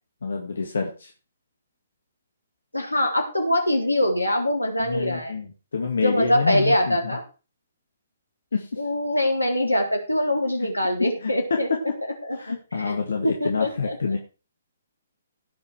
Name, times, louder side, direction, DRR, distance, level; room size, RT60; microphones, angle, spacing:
voice 1, 0.2-1.1 4.8-5.5 5.7-7.2 8.5-8.7 10.6-10.7 11.2-11.8 12.4-14.2, left 5 dB, 65° left, 2 dB, 2.2 m, -27 dB
voice 2, 2.7-5.3 6.0-7.2 8.8-11.7 12.2-12.6 12.8-13.0 13.2-14.0, left 1 dB, 90° left, 2 dB, 3.6 m, -23 dB
17.0 x 5.7 x 4.9 m, 0.33 s
figure-of-eight pair, 125°, 0 cm